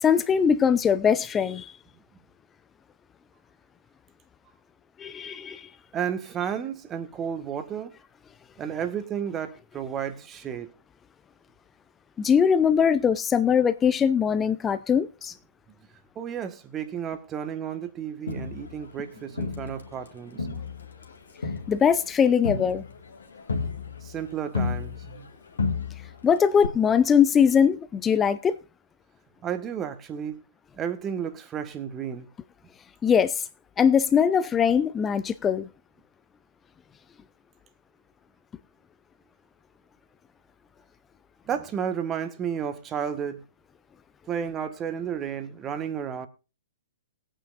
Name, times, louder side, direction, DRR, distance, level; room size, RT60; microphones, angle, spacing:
voice 1, 0.0-1.7 5.0-5.7 12.2-15.3 21.7-22.8 26.2-28.6 33.0-33.3 33.8-35.7, left 7 dB, 15° left, 0.5 m, -21 dB
voice 2, 5.9-7.9 8.6-10.7 16.1-20.6 24.0-25.3 29.4-30.4 30.7-32.3 41.4-43.4 44.3-46.3, right 8 dB, 20° right, 1.4 m, -32 dB
Crowd, 18.3-20.1 20.4-25.3 25.6-26.2 26.6-26.7, left 4 dB, 70° left, 1.9 m, -32 dB
20.5 x 9.0 x 2.5 m
figure-of-eight pair, 115°, 0 cm